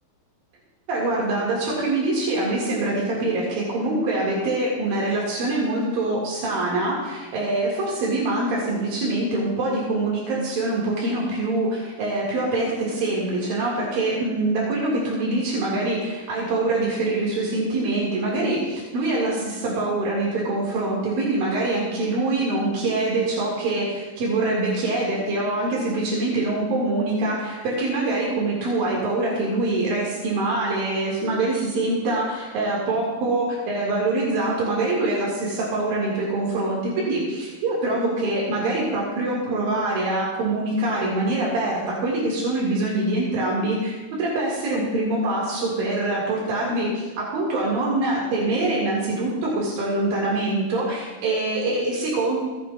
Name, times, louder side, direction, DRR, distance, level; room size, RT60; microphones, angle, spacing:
voice 1, 0.9-52.4, right 2 dB, 85° right, -5 dB, 3.8 m, -24 dB
18.0 x 8.3 x 2.4 m, 1.3 s
omnidirectional pair, 4.0 m